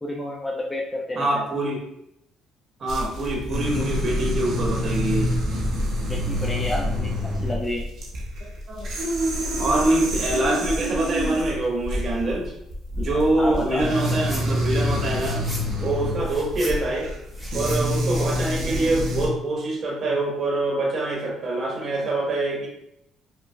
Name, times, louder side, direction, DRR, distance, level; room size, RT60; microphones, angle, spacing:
voice 1, 0.0-1.5 6.1-7.1 7.4-7.8 13.4-13.8, left 1 dB, 10° left, -2 dB, 0.5 m, -30 dB
voice 2, 1.1-1.8 2.8-5.3 8.7-8.9 9.6-12.5 13.0-15.4 15.8-17.1 17.5-22.7, right 2 dB, 50° right, -2 dB, 1.1 m, -25 dB
sound 1, 2.9-19.3, equal, 65° right, 0.9 m, -27 dB
sound 2, 14.0-14.5 14.8-18.8, equal, 5° right, 0.9 m, -39 dB
5.3 x 2.1 x 2.2 m, 0.79 s
cardioid pair, 100°, 0 cm